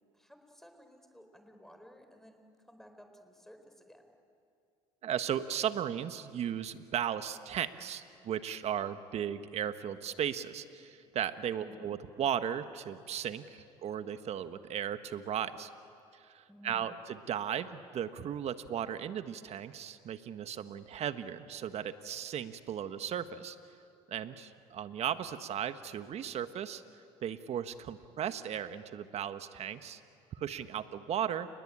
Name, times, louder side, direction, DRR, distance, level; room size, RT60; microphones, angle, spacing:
voice 1, 0.1-4.1 11.5-11.9 16.5-17.0, equal, 5° left, 5 dB, 4.7 m, -55 dB
voice 2, 5.0-15.7 16.1-23.6 24.1-26.8 27.2-30.0 30.3-31.5, right 9 dB, 55° right, 11 dB, 1.5 m, -36 dB
29.5 x 21.0 x 8.9 m, 2.5 s
supercardioid pair, 75°, 13 cm